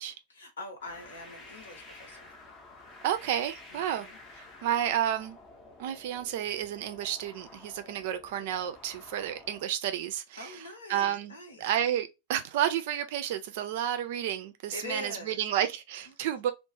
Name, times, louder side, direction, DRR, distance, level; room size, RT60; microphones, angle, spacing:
voice 1, 0.3-2.3 3.7-4.2 10.4-11.6 14.7-15.4 16.0-16.1, left 1 dB, 70° left, 0.9 m, -43 dB
sound 1, 0.8-9.6, left 2 dB, 25° left, 0.6 m, -51 dB
voice 2, 3.0-4.1 4.3-5.4 5.8-10.5 10.9-16.5, right 10 dB, 50° right, 0.4 m, -31 dB
2.3 x 2.0 x 3.1 m
figure-of-eight pair, 90°, 0 cm